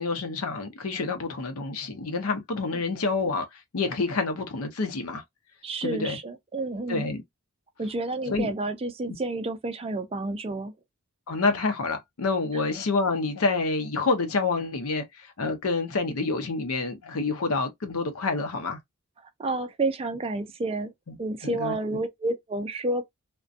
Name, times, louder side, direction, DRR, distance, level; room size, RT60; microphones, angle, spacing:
voice 1, 0.0-5.2 5.8-6.2 6.9-7.2 8.3-8.5 11.3-18.8 21.1-21.2 21.4-21.7, left 3 dB, 75° left, 0.7 m, -28 dB
voice 2, 5.6-7.1 7.8-10.7 19.4-20.9 21.2-23.0, right 2 dB, 25° right, 0.4 m, -30 dB
2.6 x 2.1 x 2.4 m
head